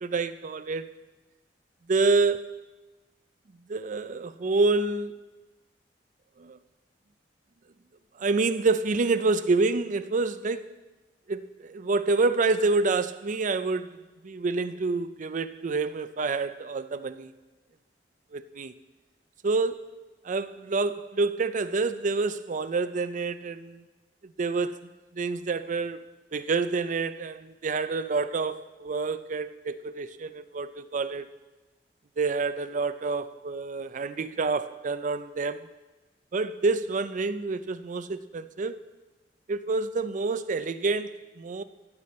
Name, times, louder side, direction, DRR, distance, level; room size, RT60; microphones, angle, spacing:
voice 1, 0.0-0.9 1.9-2.5 3.7-5.2 6.4-6.6 8.2-10.7 11.3-14.0 14.2-17.3 18.3-18.7 19.4-19.9 20.2-23.8 24.2-26.1 26.3-31.3 32.2-35.7 36.3-38.8 39.5-41.6, right 3 dB, 45° right, 0.4 m, -28 dB
15.5 x 8.4 x 4.2 m
head